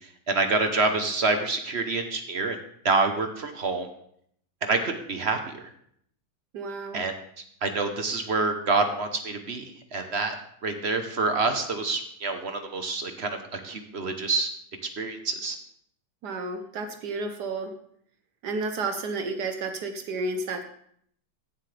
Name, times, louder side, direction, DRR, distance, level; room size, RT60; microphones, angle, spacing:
voice 1, 0.3-2.6 2.8-3.9 4.6-5.6 6.9-7.1 7.6-10.4 10.6-14.5 15.0-15.6, right 3 dB, 45° right, 6 dB, 1.1 m, -27 dB
voice 2, 6.5-7.0 16.2-17.7 18.4-20.6, right 3 dB, 75° right, 6 dB, 1.5 m, -31 dB
15.0 x 7.7 x 3.3 m, 0.67 s
omnidirectional pair, 1.8 m